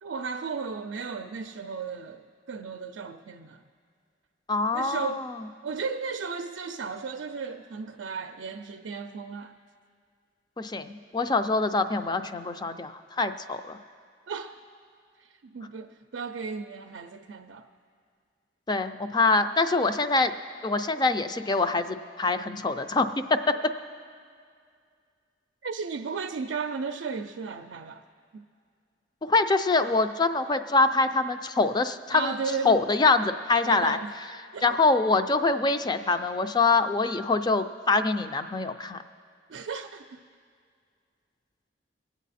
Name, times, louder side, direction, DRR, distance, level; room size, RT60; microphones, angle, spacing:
voice 1, 0.0-3.6 4.7-5.3 5.6-9.5 14.3-14.5 15.2-17.7 25.6-28.0 28.3-28.4 32.1-32.8 33.6-34.1 34.5-34.8 39.5-40.2, right 5 dB, 80° right, 0.4 m, -35 dB
voice 2, 4.5-5.4 10.6-13.8 18.7-20.3 20.6-23.6 29.2-32.3 32.6-34.0 34.6-39.0, left 3 dB, 25° left, 0.4 m, -24 dB
22.0 x 8.2 x 4.2 m
head